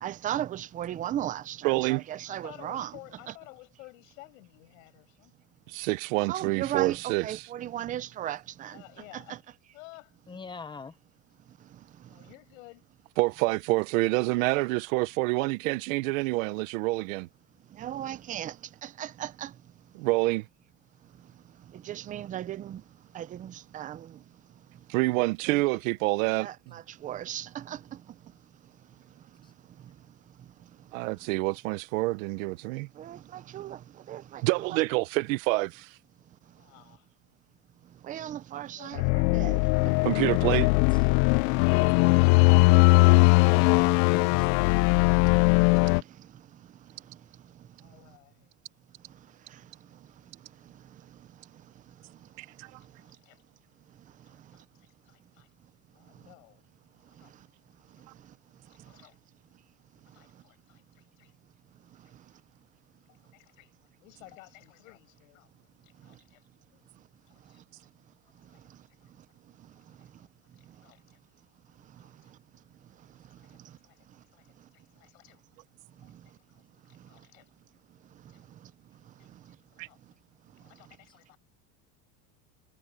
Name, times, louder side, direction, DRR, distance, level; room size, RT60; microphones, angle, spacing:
voice 1, 0.0-2.9 6.3-8.8 9.1-9.4 17.8-18.6 18.8-19.5 21.7-22.8 23.1-24.2 25.5-25.6 26.4-27.8 33.0-33.8 34.1-34.8 38.0-40.1 45.7-45.8, right 11 dB, 20° right, 0.5 m, -36 dB
voice 2, 1.6-2.0 5.7-7.5 13.2-17.3 19.9-20.5 24.9-26.8 30.9-32.9 34.4-36.0 40.0-40.7 52.4-52.8 79.8-79.9, right 22 dB, 80° right, 1.0 m, -27 dB
voice 3, 2.3-5.5 8.7-9.4 9.7-10.2 12.1-12.9 22.0-22.4 25.7-26.0 36.6-37.1 38.7-39.0 47.8-48.5 52.0-52.1 52.8-53.4 54.2-55.5 55.9-56.6 57.1-57.3 58.0-58.1 58.7-59.2 60.1-61.3 62.0-62.1 63.3-63.7 64.0-66.5 66.7-66.8 67.3-67.9 68.5-68.6 69.0-69.1 69.8-70.3 70.6-71.2 72.0-72.3 73.4-73.6 73.8-74.0 74.3-75.4 76.0-76.1 76.5-77.8 78.3-78.5 79.2-80.0 80.4-81.4, left 22 dB, 90° left, 7.1 m, -55 dB
voice 4, 10.3-10.9 29.4-29.5 40.1-40.7 43.5-44.5, left 5 dB, 10° left, 1.0 m, -42 dB
sound 1, 39.0-46.0, left 27 dB, 55° left, 0.5 m, -20 dB
cardioid pair, 160°, 39 cm